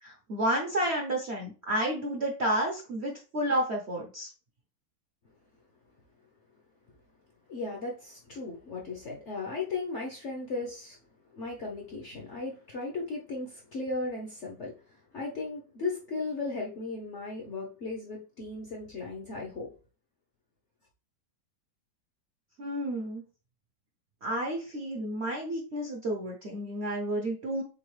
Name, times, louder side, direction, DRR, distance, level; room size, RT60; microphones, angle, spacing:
voice 1, 0.0-4.3 22.6-23.2 24.2-27.6, right 1 dB, 55° right, 0.7 m, -31 dB
voice 2, 7.5-11.0 11.3-19.7, left 3 dB, 55° left, 0.8 m, -36 dB
3.8 x 3.8 x 3.1 m
omnidirectional pair, 2.0 m